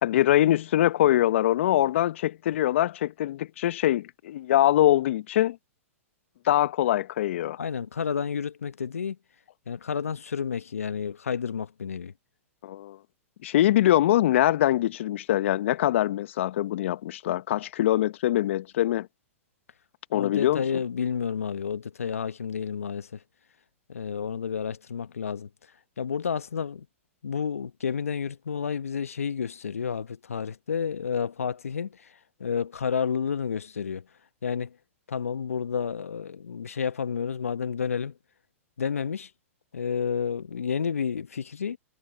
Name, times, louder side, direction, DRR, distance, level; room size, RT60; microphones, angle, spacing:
voice 1, 0.0-5.6 6.4-7.6 12.6-13.0 13.4-19.1 20.1-20.6, left 13 dB, 60° left, 1.0 m, -23 dB
voice 2, 7.6-9.2 9.7-12.1 20.1-23.2 23.9-25.5 26.0-26.9 27.2-34.1 34.4-34.8 35.1-38.2 38.8-39.3 39.7-41.8, left 6 dB, 80° left, 1.2 m, -30 dB
hypercardioid pair, 110°, 8 cm